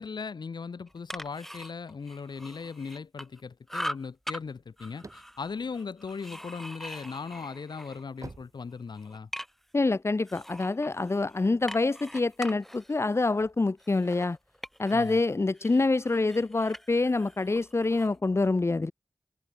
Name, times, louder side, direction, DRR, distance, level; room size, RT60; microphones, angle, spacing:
voice 1, 0.0-9.3 14.9-15.2, left 5 dB, 90° left, 0.8 m, -38 dB
small marble cutting boards, 0.9-3.4 3.7-4.4 4.8-8.3 8.7-9.8 10.3-15.2 15.5-18.2, equal, 5° left, 4.5 m, -42 dB
sound 1, 4.8-6.7 7.2-9.4, right 3 dB, 50° right, 2.5 m, -49 dB
voice 2, 9.7-14.4 14.8-18.9, left 3 dB, 40° left, 0.6 m, -26 dB
wide cardioid pair, 75°, 7 cm